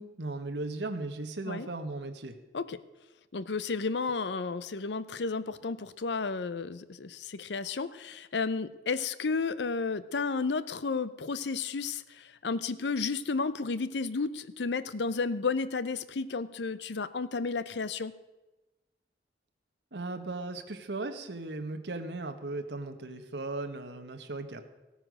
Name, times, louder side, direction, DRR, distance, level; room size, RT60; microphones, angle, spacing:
voice 1, 0.0-2.4 19.9-24.6, right 2 dB, 75° right, 6 dB, 1.4 m, -37 dB
voice 2, 3.3-18.1, left 4 dB, 75° left, 15 dB, 0.6 m, -32 dB
16.5 x 9.0 x 6.3 m, 1.1 s
head